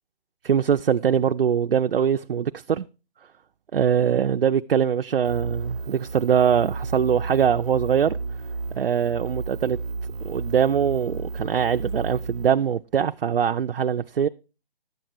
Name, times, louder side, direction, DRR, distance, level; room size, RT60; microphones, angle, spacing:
voice 1, 0.4-2.9 3.7-8.2 8.8-9.8 10.2-14.3, right 8 dB, 70° right, 0.5 m, -22 dB
sound 1, 5.2-12.5, right 4 dB, 35° right, 0.8 m, -32 dB
11.5 x 7.8 x 4.5 m
hypercardioid pair, 180°, 30 cm